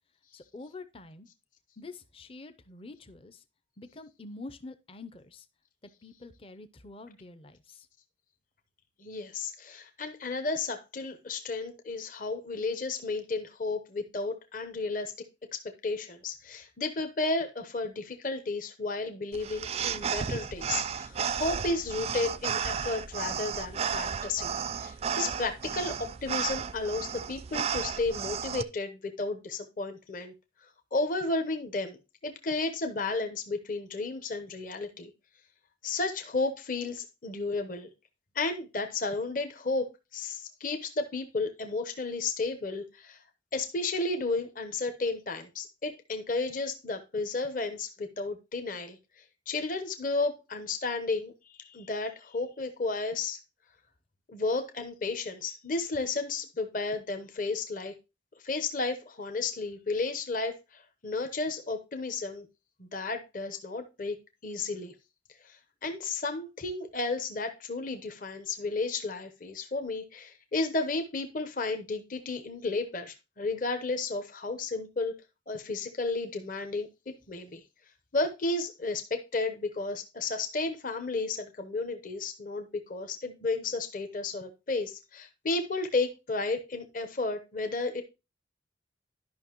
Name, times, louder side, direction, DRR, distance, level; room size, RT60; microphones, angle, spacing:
voice 1, 0.3-1.3 1.8-3.4 3.8-5.5 5.8-7.9, left 3 dB, 30° left, 0.6 m, -46 dB
voice 2, 9.0-15.1 15.5-30.3 30.9-32.0 32.2-35.1 35.8-37.9 38.3-43.2 43.5-49.0 49.5-53.4 54.3-57.9 58.4-62.4 62.8-64.2 64.4-64.9 65.4-75.1 75.5-76.9 77.3-77.6 78.1-88.0, left 3 dB, 45° left, 0.9 m, -33 dB
sound 1, 19.3-28.6, right 7 dB, 35° right, 0.3 m, -33 dB
11.5 x 5.7 x 3.0 m
head